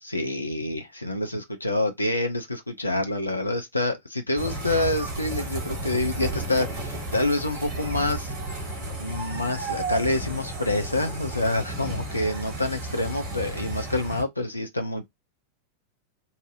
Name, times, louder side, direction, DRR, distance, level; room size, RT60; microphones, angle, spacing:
voice 1, 0.0-8.7 9.0-15.1, left 2 dB, 85° left, 0.5 m, -27 dB
sound 1, 4.4-14.2, right 2 dB, 40° right, 2.2 m, -33 dB
4.1 x 2.6 x 2.4 m
figure-of-eight pair, 90°, 0 cm